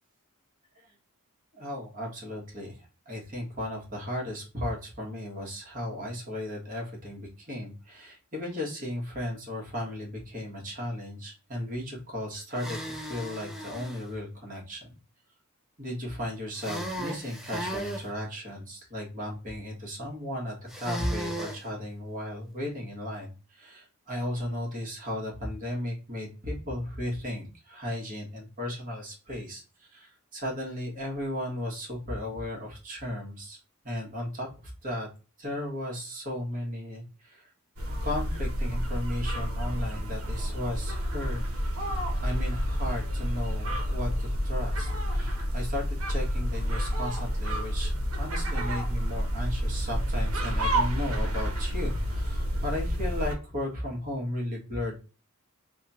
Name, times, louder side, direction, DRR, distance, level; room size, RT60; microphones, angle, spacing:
voice 1, 1.5-2.7 3.0-14.9 15.8-33.6 33.8-35.1 35.4-37.4 38.0-41.4 42.2-55.0, left 1 dB, 40° right, -2 dB, 1.6 m, -35 dB
sound 1, 12.5-14.0 16.6-18.1 20.7-21.6, right 1 dB, ahead, 0.5 m, -36 dB
sound 2, 37.8-53.3, equal, 80° right, 1.0 m, -29 dB
3.5 x 2.4 x 4.1 m, 0.33 s
head